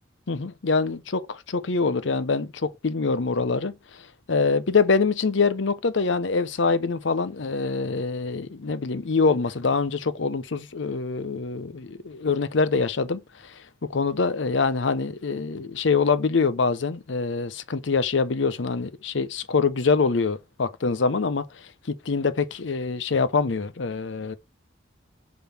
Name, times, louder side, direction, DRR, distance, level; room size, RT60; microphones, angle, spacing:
voice 1, 0.3-3.7 4.3-13.5 13.8-21.4 21.9-24.4, left 4 dB, 75° left, 0.7 m, -24 dB
6.8 x 3.8 x 5.8 m
head